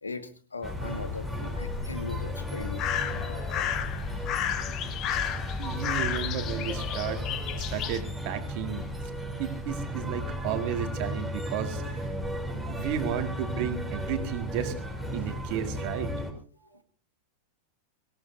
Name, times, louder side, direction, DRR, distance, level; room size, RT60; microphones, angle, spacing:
voice 1, 0.0-3.5 15.2-15.4, left 3 dB, 75° left, 10 dB, 1.7 m, -40 dB
sound 1, 0.6-8.0, left 9 dB, 35° left, 1.3 m, -33 dB
sound 2, 0.6-16.3, equal, ahead, 3.6 m, -35 dB
voice 2, 5.6-7.3 7.5-8.9 9.4-12.2 12.7-14.8 15.1-16.1 16.6-16.7, right 9 dB, 45° right, 7 dB, 2.1 m, -33 dB
24.0 x 17.5 x 2.7 m, 0.38 s
figure-of-eight pair, 90°, 0 cm